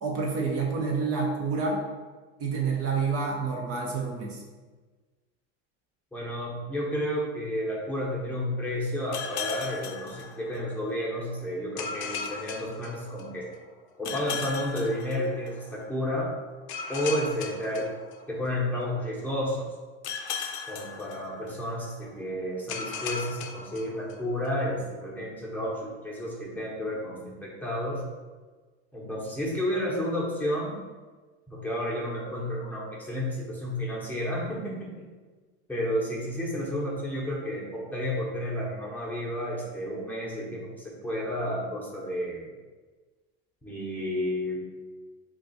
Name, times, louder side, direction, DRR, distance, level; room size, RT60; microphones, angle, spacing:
voice 1, 0.0-1.8 2.4-4.4, right 4 dB, 50° right, -1 dB, 0.6 m, -28 dB
voice 2, 6.1-13.5 14.0-16.3 16.9-17.9 18.3-19.7 20.7-28.0 28.9-30.8 31.5-35.1 35.7-42.5 43.6-44.6, equal, 5° left, -5 dB, 0.8 m, -31 dB
sound 1, 9.1-10.9 11.8-13.5 14.0-15.8 16.7-18.7 20.0-21.8 22.7-24.5, left 6 dB, 85° left, 0.5 m, -37 dB
2.4 x 2.3 x 4.0 m, 1.3 s
supercardioid pair, 95°, 33 cm